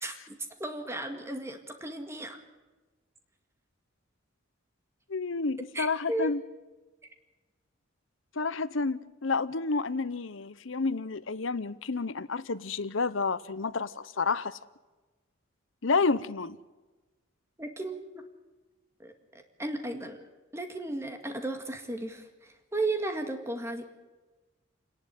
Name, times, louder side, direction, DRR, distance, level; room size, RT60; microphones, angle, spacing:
voice 1, 0.0-2.4 5.7-6.4 17.6-18.0 19.0-20.3 20.5-23.8, right 2 dB, 15° right, 2.0 m, -35 dB
voice 2, 5.1-6.4 8.4-14.6 15.8-16.6, left 4 dB, 70° left, 0.9 m, -30 dB
28.0 x 11.0 x 9.3 m
head